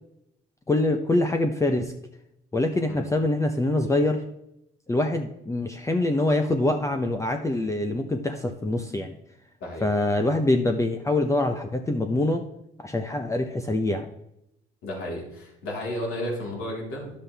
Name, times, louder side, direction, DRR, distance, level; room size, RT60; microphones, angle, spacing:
voice 1, 0.7-1.9 2.5-4.2 4.9-9.1 9.8-12.4 12.8-14.1, left 2 dB, 15° left, 5 dB, 0.7 m, -24 dB
voice 2, 14.8-17.1, left 1 dB, 75° left, -3 dB, 3.9 m, -33 dB
10.5 x 7.4 x 3.4 m, 0.81 s
cardioid pair, 95°, 21 cm